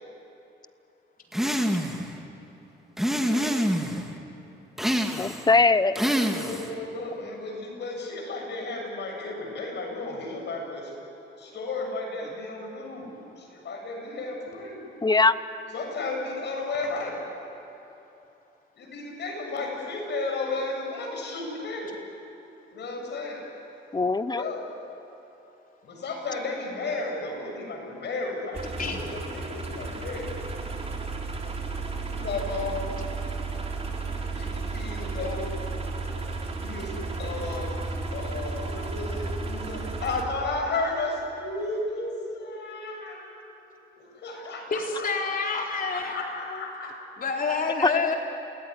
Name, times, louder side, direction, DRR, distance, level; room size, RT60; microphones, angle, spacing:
sound 1, 1.3-2.1 3.0-4.0 4.8-5.5 6.0-6.7, equal, ahead, 2.3 m, -26 dB
voice 1, 3.2-3.6 5.9-10.9 11.4-14.8 15.7-17.2 18.8-22.0 22.7-23.4 24.3-24.7 25.8-30.3 32.0-33.0 34.3-35.5 36.5-37.7 38.1-43.4 44.0-45.3 45.7-46.9, left 3 dB, 60° left, 1 dB, 7.8 m, -33 dB
voice 2, 5.2-5.9 15.0-15.3 23.9-24.4 47.8-48.1, left 3 dB, 20° left, 14 dB, 0.9 m, -21 dB
sound 2, 28.5-40.2, right 3 dB, 30° right, 3.9 m, -33 dB
voice 3, 44.7-46.6 47.2-48.2, left 4 dB, 45° left, 1 dB, 4.2 m, -28 dB
29.5 x 19.0 x 9.9 m, 2.9 s
cardioid pair, 90°, 20 cm